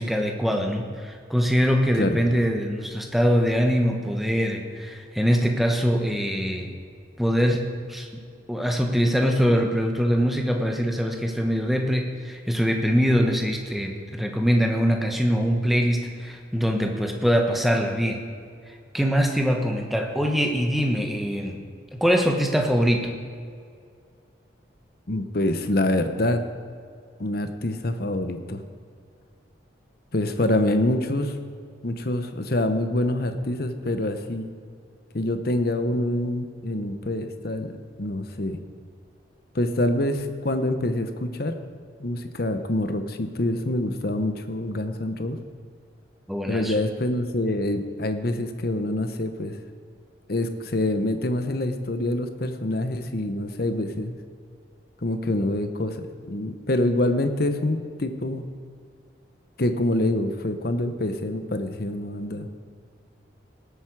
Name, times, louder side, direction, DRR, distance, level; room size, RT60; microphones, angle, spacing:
voice 1, 0.0-6.7 7.2-7.6 7.9-8.1 8.5-18.2 18.7-21.6 21.9-23.1 46.3-46.7, equal, ahead, 2 dB, 1.1 m, -23 dB
voice 2, 25.1-26.4 27.2-28.6 30.1-31.4 31.8-34.5 35.1-37.7 38.0-38.6 39.5-41.6 42.0-45.4 46.5-49.6 50.3-54.2 55.0-58.4 59.6-62.5, left 1 dB, 50° left, 8 dB, 0.9 m, -26 dB
19.0 x 8.3 x 4.8 m, 2.2 s
head